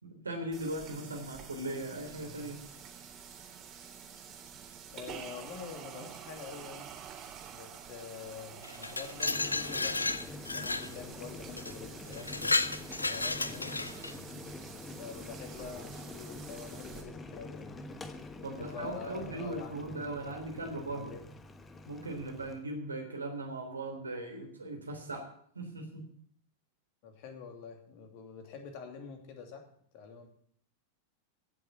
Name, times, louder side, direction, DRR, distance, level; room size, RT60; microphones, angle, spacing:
voice 1, 0.0-2.6 18.4-21.1 21.9-25.3 25.6-26.1, right 2 dB, 75° right, 3 dB, 3.4 m, -39 dB
sound 1, 0.5-17.0, right 8 dB, 30° right, 3.4 m, -48 dB
voice 2, 4.9-6.9 7.5-10.1 10.4-12.5 13.0-13.8 15.0-17.7 18.5-20.3 20.9-21.3 27.0-29.6 29.9-30.3, left 6 dB, 45° left, 4 dB, 2.7 m, -46 dB
Glass, 8.6-10.9 11.6-11.7 12.1-14.2, left 3 dB, 80° left, 0.6 m, -32 dB
Boiling, 9.1-22.6, left 2 dB, 15° left, 1.2 m, -46 dB
16.0 x 7.2 x 7.4 m, 0.63 s
figure-of-eight pair, 90°, 0 cm